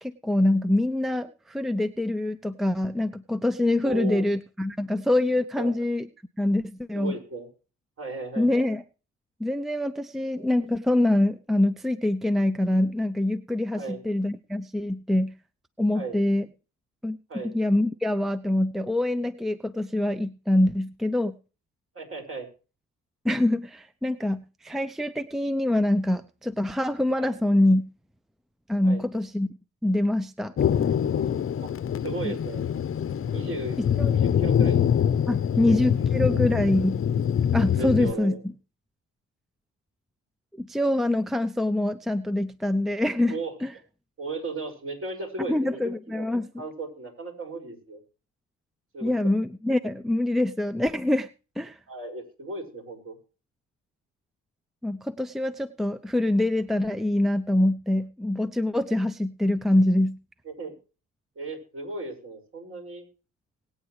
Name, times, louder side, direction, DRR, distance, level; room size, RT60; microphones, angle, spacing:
voice 1, 0.0-6.1 6.4-7.1 8.4-8.8 9.4-15.3 15.8-16.5 17.0-17.2 17.4-21.4 23.2-27.8 28.7-29.5 29.8-30.5 32.2-32.3 33.8-34.1 35.3-37.0 37.5-38.4 40.6-43.7 45.5-46.5 49.0-51.3 51.6-51.8 54.8-60.2, left 1 dB, ahead, 13 dB, 0.6 m, -25 dB
voice 2, 3.8-4.2 5.6-5.7 7.0-7.5 8.0-8.5 13.8-14.1 15.9-16.2 17.3-17.5 21.9-22.5 27.2-27.3 28.8-29.0 31.6-31.7 32.0-32.7 33.3-33.8 34.1-34.9 35.2-35.8 37.8-38.4 43.3-43.5 44.2-48.0 48.9-49.1 51.9-53.1 60.5-60.7 61.4-63.1, right 3 dB, 45° right, 3 dB, 5.8 m, -36 dB
Thunder, 30.6-38.1, left 8 dB, 45° left, 0.8 m, -24 dB
21.0 x 9.0 x 3.2 m, 0.34 s
cardioid pair, 90°, 30 cm